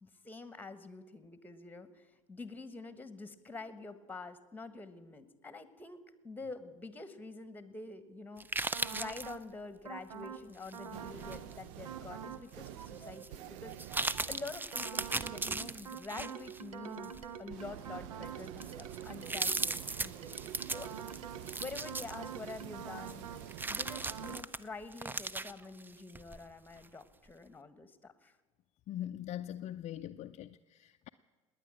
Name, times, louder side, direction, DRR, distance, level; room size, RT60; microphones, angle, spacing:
voice 1, 0.0-8.5 8.9-13.8 14.3-20.9 21.2-21.3 21.6-23.3 23.7-28.3, left 3 dB, 10° left, 1.4 m, -47 dB
sound 1, 8.4-9.4 10.6-11.6 12.1-12.2 13.1-13.3 13.7-16.6 17.0-17.3 18.0-18.1 18.4-22.7 23.1-26.4 26.8-26.9, right 3 dB, 10° right, 0.5 m, -37 dB
sound 2, 8.7-9.4 9.8-10.4 10.7-11.4 11.8-12.4 12.8-19.8 20.2-23.4 23.8-24.4, right 7 dB, 80° right, 0.9 m, -46 dB
sound 3, 10.9-24.4, right 13 dB, 60° right, 0.5 m, -49 dB
voice 2, 28.9-31.1, left 11 dB, 40° left, 0.5 m, -42 dB
19.0 x 9.6 x 7.6 m
hypercardioid pair, 75°, 18 cm